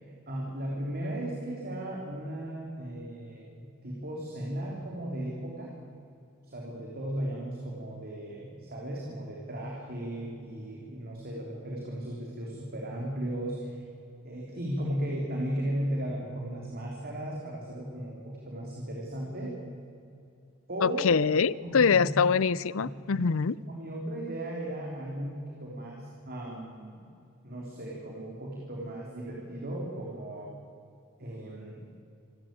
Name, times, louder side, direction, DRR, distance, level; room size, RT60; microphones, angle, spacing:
voice 1, 0.3-5.7 6.4-13.8 14.2-19.5 20.7-21.1 21.6-22.1 22.8-23.3 23.7-27.0 27.4-30.5 31.2-31.8, right 1 dB, 45° right, -2 dB, 3.5 m, -36 dB
voice 2, 20.8-23.6, left 5 dB, 65° left, 20 dB, 0.6 m, -24 dB
27.0 x 13.0 x 9.0 m, 2.7 s
head